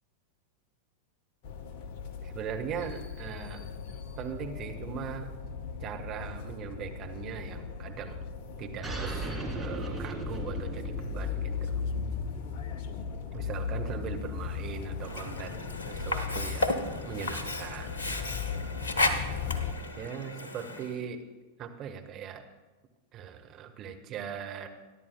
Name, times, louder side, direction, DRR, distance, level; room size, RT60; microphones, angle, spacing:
sound 1, 1.4-19.7, left 6 dB, 50° left, 0.8 m, -37 dB
voice 1, 2.2-3.6 4.2-5.3 5.8-8.2 8.6-11.8 13.3-17.9 19.8-21.2 21.6-22.4 23.1-24.7, right 7 dB, 35° right, 4 dB, 1.3 m, -40 dB
sound 2, 8.8-13.9, right 2 dB, 5° right, 2.4 m, -38 dB
Sink (filling or washing), 15.0-21.0, left 2 dB, 70° left, 1.1 m, -33 dB
22.5 x 11.0 x 2.3 m, 1.2 s
figure-of-eight pair, 90°, 0 cm